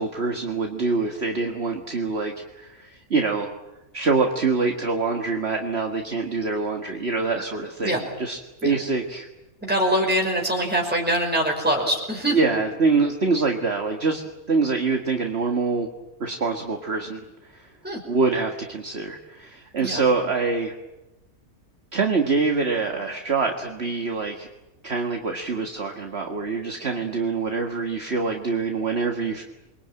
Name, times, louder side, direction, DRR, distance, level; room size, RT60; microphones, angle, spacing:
voice 1, 0.0-3.5 3.9-9.3 12.3-14.2 14.5-15.9 16.2-17.2 17.5-17.7 18.1-20.7 21.9-24.5 24.8-29.4, right 4 dB, 45° right, 3 dB, 2.0 m, -25 dB
voice 2, 9.6-12.4 17.8-18.0 19.8-20.0, equal, 5° right, -1 dB, 5.3 m, -23 dB
28.5 x 22.5 x 9.0 m, 1.0 s
omnidirectional pair, 1.5 m